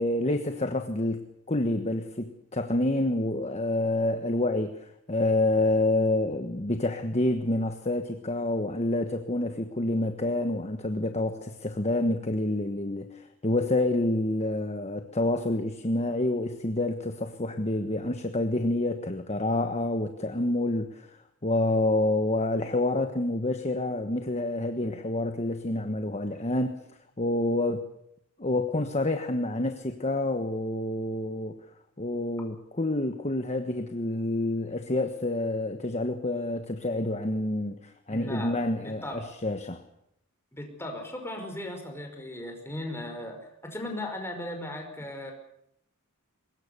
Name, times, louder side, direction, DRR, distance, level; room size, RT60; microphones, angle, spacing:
voice 1, 0.0-26.8 27.2-27.9 28.4-31.6 32.0-39.8, left 2 dB, 30° left, 7 dB, 1.3 m, -28 dB
voice 2, 38.1-39.2 40.5-45.3, left 1 dB, 10° left, 3 dB, 5.2 m, -37 dB
23.5 x 20.5 x 6.9 m, 0.77 s
head